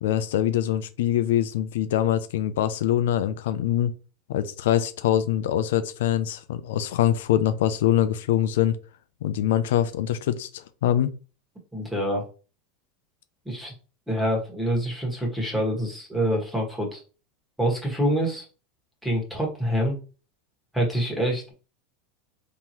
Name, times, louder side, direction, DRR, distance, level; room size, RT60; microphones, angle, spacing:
voice 1, 0.0-3.9 4.3-8.8 9.2-11.1, left 11 dB, 85° left, 0.4 m, -24 dB
voice 2, 11.7-12.3 13.4-13.7 14.1-17.0 17.6-18.4 19.0-20.0 20.7-21.5, equal, 5° right, 1.4 m, -26 dB
3.7 x 2.9 x 2.9 m
supercardioid pair, 130°, 0 cm